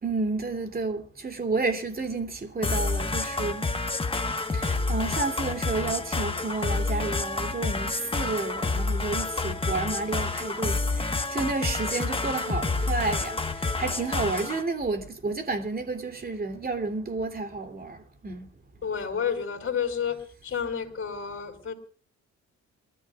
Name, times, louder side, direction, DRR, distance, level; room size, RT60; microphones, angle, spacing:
voice 1, 0.0-3.7 4.5-18.0 18.2-18.5, right 3 dB, 30° right, 3.0 m, -31 dB
sound 1, 2.6-14.6, left 3 dB, 20° left, 1.4 m, -29 dB
voice 2, 18.8-21.7, left 7 dB, 45° left, 4.2 m, -30 dB
28.5 x 13.5 x 2.5 m
cardioid pair, 90°, 30 cm